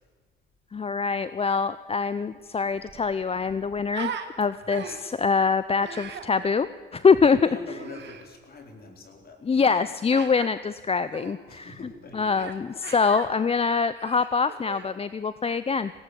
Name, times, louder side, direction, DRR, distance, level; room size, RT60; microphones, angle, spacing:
voice 1, 0.7-4.1 4.4-7.5 9.4-11.8 12.1-15.9, left 5 dB, 30° left, 14 dB, 0.6 m, -24 dB
Human voice, 2.3-2.4 2.7-4.3 4.7-5.2 5.8-6.3 7.7-8.3 10.1-10.5 11.1-11.3 12.3-12.6 12.8-13.3 13.9-15.0, right 8 dB, 65° right, 2.1 m, -39 dB
voice 2, 7.3-9.5 11.5-12.3, left 3 dB, 50° left, 4 dB, 4.3 m, -42 dB
19.5 x 17.5 x 8.4 m, 1.5 s
cardioid pair, 90°, 20 cm